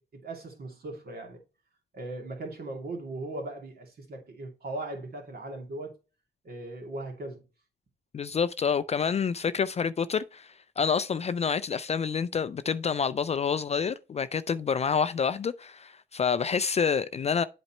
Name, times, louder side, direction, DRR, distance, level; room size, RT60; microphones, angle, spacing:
voice 1, 0.2-1.4 1.9-5.9 6.4-7.4, right 2 dB, 50° right, 2.7 m, -38 dB
voice 2, 8.1-17.4, left 6 dB, 35° left, 0.4 m, -28 dB
8.0 x 4.2 x 4.4 m
cardioid pair, 90°, 20 cm